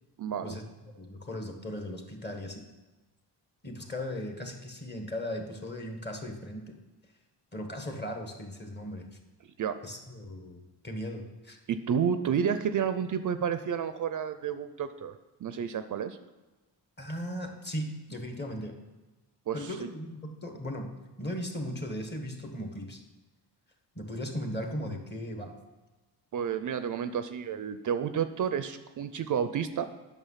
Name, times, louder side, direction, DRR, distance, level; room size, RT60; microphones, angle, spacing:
voice 1, 0.2-0.6 9.4-9.8 11.7-15.2 15.4-16.2 19.5-19.9 26.3-29.9, right 7 dB, 50° right, 11 dB, 0.5 m, -30 dB
voice 2, 1.0-2.6 3.6-6.8 7.5-9.1 9.8-11.6 17.0-18.7 19.5-20.9 21.2-23.0 23.9-25.5, equal, 25° left, 4 dB, 1.5 m, -37 dB
9.0 x 6.3 x 5.6 m, 1.2 s
cardioid pair, 90°, 41 cm